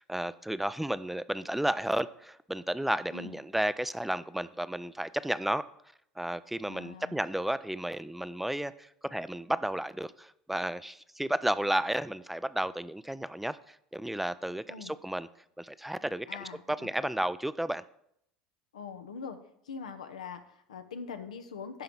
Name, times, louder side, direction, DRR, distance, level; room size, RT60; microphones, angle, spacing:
voice 1, 0.0-5.6 6.2-15.3 15.6-17.8, right 1 dB, 5° right, 15 dB, 0.4 m, -32 dB
voice 2, 6.6-7.2 14.7-14.9 16.3-16.9 18.7-19.4 19.6-21.8, left 6 dB, 90° left, 8 dB, 0.8 m, -42 dB
11.0 x 3.9 x 6.0 m, 0.73 s
hypercardioid pair, 80°, 4 cm